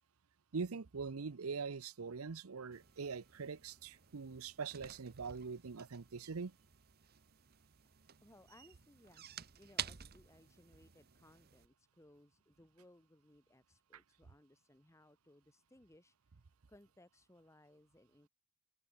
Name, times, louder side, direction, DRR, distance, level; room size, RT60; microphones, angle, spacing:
voice 1, 0.5-6.6 13.9-14.0, right 5 dB, 75° right, 0.7 m, -43 dB
sound 1, 2.7-11.7, right 10 dB, 45° right, 1.0 m, -51 dB
voice 2, 8.2-16.1 16.7-18.3, left 1 dB, 15° left, 1.4 m, -64 dB
open air
head